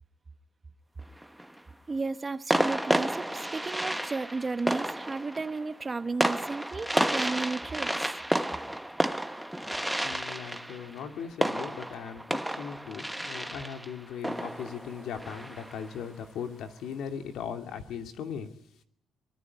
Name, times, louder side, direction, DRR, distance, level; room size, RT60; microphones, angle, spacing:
sound 1, 1.0-1.6 2.5-15.9, right 1 dB, 5° right, 1.2 m, -31 dB
voice 1, 1.9-7.9 13.6-13.7, right 3 dB, 30° right, 1.1 m, -33 dB
voice 2, 10.0-18.8, left 7 dB, 80° left, 2.6 m, -39 dB
24.0 x 20.0 x 9.6 m
cardioid pair, 90°, 0 cm